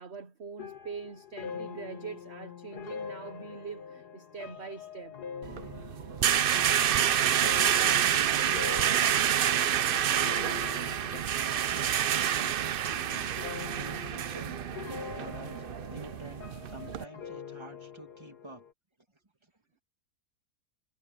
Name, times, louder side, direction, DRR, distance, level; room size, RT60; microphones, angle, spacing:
voice 1, 0.0-5.2, right 5 dB, 45° right, 1.3 m, -43 dB
sound 1, 0.6-12.0 12.3-12.9 13.4-18.7, left 7 dB, 85° left, 2.0 m, -44 dB
sound 2, 5.4-17.0, right 10 dB, 70° right, 0.5 m, -28 dB
voice 2, 6.3-15.6 15.9-18.6 19.4-19.5, right 1 dB, 15° right, 2.3 m, -47 dB
omnidirectional pair, 1.6 m